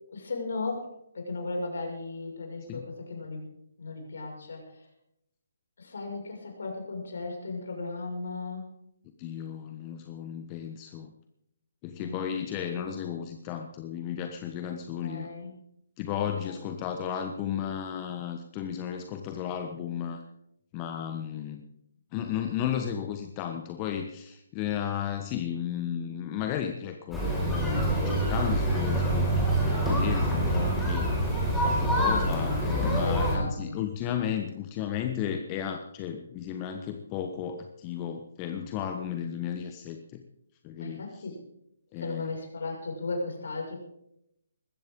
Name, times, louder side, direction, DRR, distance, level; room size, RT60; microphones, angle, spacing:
voice 1, 0.1-0.9 1.1-3.4 3.8-4.8 5.8-8.7 12.0-12.4 15.0-15.5 16.4-16.9 32.9-33.8 40.8-41.4 42.0-43.7, left 3 dB, 60° left, 1 dB, 6.0 m, -36 dB
voice 2, 9.2-11.1 11.8-15.3 16.0-20.2 20.7-21.6 22.1-31.2 31.6-40.2 40.6-41.2 41.9-42.3, left 9 dB, 25° left, 6 dB, 1.2 m, -34 dB
sound 1, 27.1-33.4, right 1 dB, ahead, 5.4 m, -26 dB
20.5 x 15.5 x 3.8 m, 0.78 s
figure-of-eight pair, 140°, 0 cm